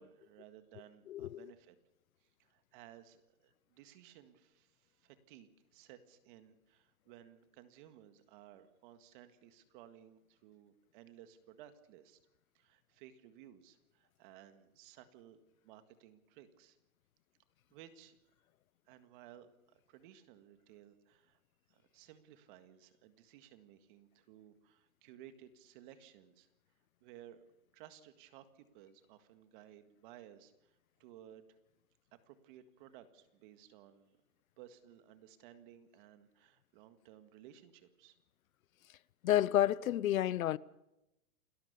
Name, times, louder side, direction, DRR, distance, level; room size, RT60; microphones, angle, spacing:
voice 1, 0.0-1.8 2.2-12.2 12.5-16.8 17.7-18.2 18.9-21.4 21.7-26.5 27.0-27.4 27.7-31.5 32.2-34.1 34.6-38.2, right 11 dB, 35° right, 1.8 m, -58 dB
voice 2, 1.1-1.5 39.2-40.6, left 12 dB, 70° left, 0.8 m, -30 dB
29.0 x 13.0 x 7.0 m
hypercardioid pair, 155°, 44 cm